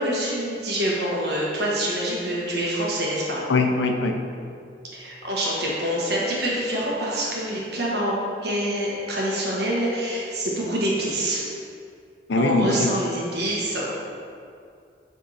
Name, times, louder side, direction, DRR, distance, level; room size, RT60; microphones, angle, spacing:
voice 1, 0.0-3.4 4.9-8.1 8.4-11.4 12.4-14.0, right 1 dB, 70° right, -5 dB, 1.3 m, -26 dB
voice 2, 3.5-4.2 12.3-12.9, left 3 dB, 90° left, 4 dB, 0.6 m, -21 dB
7.6 x 3.5 x 4.1 m, 2.4 s
head